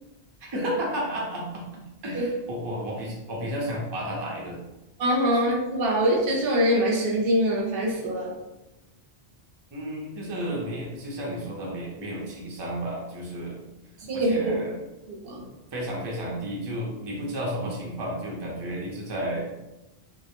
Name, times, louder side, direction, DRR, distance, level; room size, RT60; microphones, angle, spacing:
voice 1, 0.4-4.6 9.7-13.6 14.1-14.8 15.7-19.5, right 1 dB, 35° right, -3 dB, 0.4 m, -32 dB
voice 2, 5.0-8.3 14.1-14.5 15.1-15.4, equal, 65° right, -2 dB, 0.7 m, -24 dB
2.1 x 2.0 x 2.9 m, 0.98 s
omnidirectional pair, 1.1 m